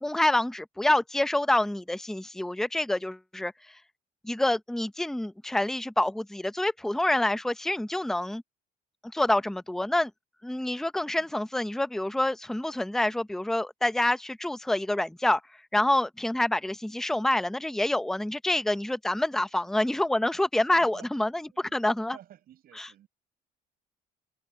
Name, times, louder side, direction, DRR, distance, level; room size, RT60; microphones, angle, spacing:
voice 1, 0.0-3.5 4.2-8.4 9.0-10.1 10.4-15.4 15.7-21.3 21.7-22.2, left 1 dB, ahead, 0.7 m, -27 dB
voice 2, 20.7-21.1 21.4-21.8 22.1-23.1, right 11 dB, 65° right, 7.4 m, -52 dB
cardioid pair, 110°, 17 cm